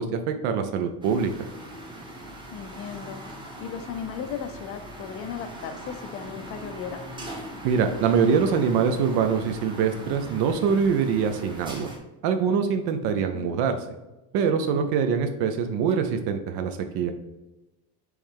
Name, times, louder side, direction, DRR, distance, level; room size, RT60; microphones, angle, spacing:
voice 1, 0.0-1.3 7.6-11.9 12.2-13.8 14.3-17.1, right 6 dB, 75° right, 6 dB, 0.6 m, -24 dB
sound 1, 1.0-12.0, right 1 dB, 10° right, 0.8 m, -40 dB
voice 2, 2.5-3.2 3.6-7.0 13.3-13.6, left 7 dB, 35° left, 9 dB, 0.4 m, -36 dB
4.6 x 3.2 x 3.6 m, 1.0 s
cardioid pair, 140°, 39 cm